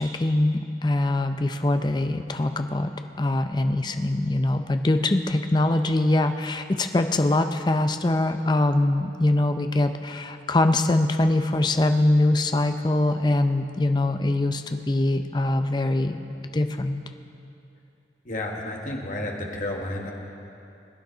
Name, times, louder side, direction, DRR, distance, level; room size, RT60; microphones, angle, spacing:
voice 1, 0.0-2.9 3.2-17.0, left 2 dB, 25° left, 7 dB, 0.5 m, -23 dB
voice 2, 18.2-20.1, left 1 dB, 45° left, 0 dB, 1.4 m, -31 dB
21.5 x 9.5 x 3.9 m, 2.7 s
head